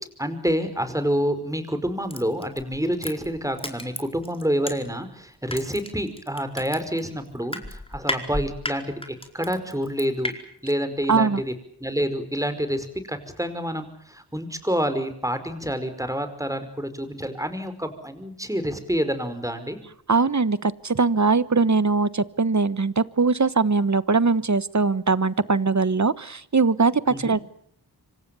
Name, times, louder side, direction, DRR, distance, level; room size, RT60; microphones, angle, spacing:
voice 1, 0.2-9.0 9.3-10.3 10.6-11.5 11.8-19.8 27.1-27.4, equal, 10° right, 10 dB, 5.2 m, -28 dB
Crushing, 2.1-5.1 5.5-10.3 10.7-10.8, left 1 dB, 15° left, 4.6 m, -33 dB
voice 2, 11.1-11.4 20.1-27.4, right 4 dB, 45° right, 16 dB, 1.3 m, -21 dB
26.5 x 25.5 x 7.0 m, 0.65 s
wide cardioid pair, 60°, 39 cm